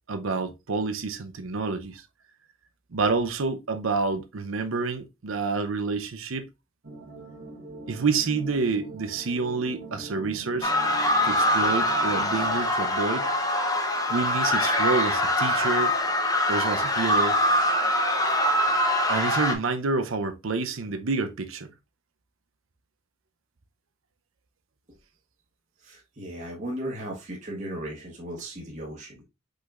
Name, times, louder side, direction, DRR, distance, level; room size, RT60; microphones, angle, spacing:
voice 1, 0.1-2.0 2.9-6.5 7.9-10.7 11.2-13.3 14.1-15.9 16.5-17.4 19.1-21.7, right 4 dB, 80° right, 0.6 m, -28 dB
sound 1, 6.8-12.6, right 2 dB, 60° right, 1.2 m, -43 dB
sound 2, 10.6-19.6, left 1 dB, 20° left, 0.8 m, -24 dB
voice 2, 25.8-29.2, right 1 dB, 35° right, 1.2 m, -36 dB
5.0 x 4.1 x 2.4 m
head